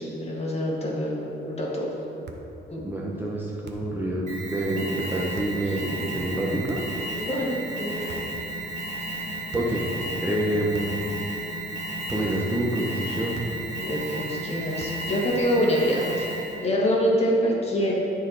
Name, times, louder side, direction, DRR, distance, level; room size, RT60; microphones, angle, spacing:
voice 1, 0.0-1.9 2.7-2.8 5.7-5.8 7.1-8.2 13.8-16.3 16.6-17.9, equal, 30° left, -4 dB, 2.0 m, -26 dB
sound 1, 2.2-2.5 3.6-4.0 5.3-5.6 6.7-7.1 8.1-8.5 9.5-9.8 10.7-11.1 12.1-12.4 13.3-13.7 14.8-15.1, right 3 dB, 60° right, 0.9 m, -43 dB
voice 2, 2.8-6.8 9.5-11.0 12.1-13.4, right 1 dB, 10° right, -5 dB, 1.2 m, -27 dB
Alarm, 4.3-16.7, right 1 dB, 35° right, 2.0 m, -33 dB
12.5 x 4.5 x 4.2 m, 2.8 s
cardioid pair, 90°, 20 cm